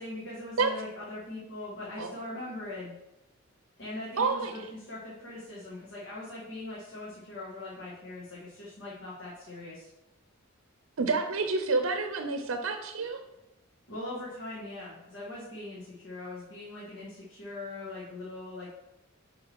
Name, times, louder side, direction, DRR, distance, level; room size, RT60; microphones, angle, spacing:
voice 1, 0.0-2.9 3.8-9.9 13.9-18.7, left 2 dB, 60° left, -7 dB, 1.8 m, -41 dB
voice 2, 4.2-4.7 11.0-13.2, right 4 dB, 85° right, 6 dB, 0.6 m, -29 dB
8.7 x 3.8 x 4.6 m, 0.93 s
head